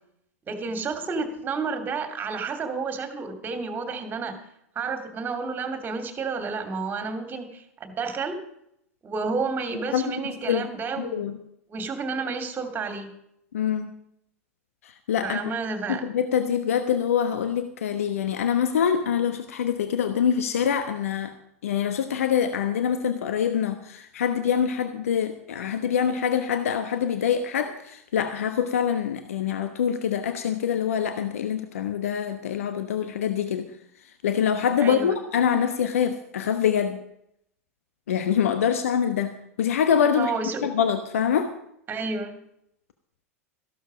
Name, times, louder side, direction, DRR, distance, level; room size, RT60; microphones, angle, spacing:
voice 1, 0.5-4.4 4.7-8.3 9.0-11.3 11.7-13.1 15.2-16.0 34.8-35.1 40.1-40.6 41.9-42.4, right 4 dB, 25° right, 6 dB, 2.7 m, -30 dB
voice 2, 11.0-11.4 13.5-13.9 14.8-15.4 15.9-21.3 21.6-33.7 34.0-37.0 38.1-40.3 40.6-41.5, left 8 dB, 70° left, 8 dB, 1.1 m, -25 dB
14.5 x 12.0 x 5.1 m, 0.74 s
figure-of-eight pair, 90°, 8 cm